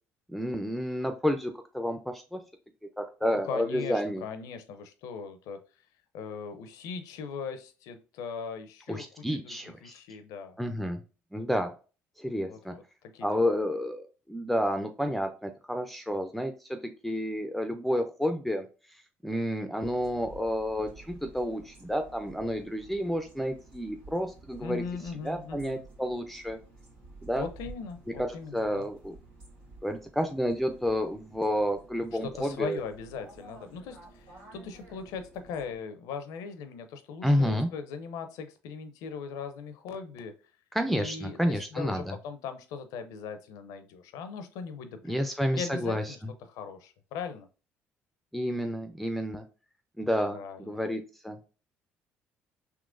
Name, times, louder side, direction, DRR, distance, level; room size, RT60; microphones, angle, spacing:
voice 1, 0.3-2.4 3.0-4.2 8.9-9.9 10.6-11.0 11.3-11.7 12.2-12.8 13.2-18.6 18.9-24.8 25.2-26.6 27.2-27.5 28.2-29.1 29.8-32.8 37.2-37.7 40.7-42.1 45.1-46.2 48.3-49.4 50.0-51.4, equal, ahead, 7 dB, 0.4 m, -30 dB
voice 2, 3.2-5.6 6.1-9.1 9.3-10.6 12.5-12.8 13.1-13.6 24.6-25.8 27.4-28.9 32.2-40.3 40.9-45.3 45.5-46.2 46.5-47.5 50.3-50.8, left 5 dB, 75° left, 9 dB, 0.5 m, -39 dB
sound 1, 19.8-35.8, right 2 dB, 90° right, 1.6 m, -52 dB
3.7 x 2.8 x 2.5 m, 0.34 s
supercardioid pair, 65°, 6 cm